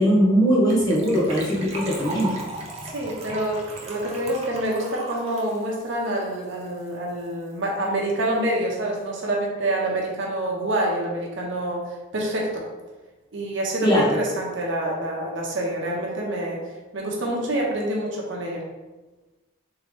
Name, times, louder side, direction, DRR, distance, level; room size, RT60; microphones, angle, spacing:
voice 1, 0.0-2.3 13.8-14.2, equal, 20° left, -6 dB, 0.7 m, -20 dB
Gurgling / Trickle dribble / Fill (with liquid), 0.7-6.9 7.2-7.3 7.5-7.7 8.0-8.1, right 2 dB, 30° right, 0.6 m, -37 dB
voice 2, 2.9-12.6 13.3-16.6 16.9-18.6, right 1 dB, 60° right, -2 dB, 0.8 m, -27 dB
3.6 x 3.0 x 3.4 m, 1.2 s
head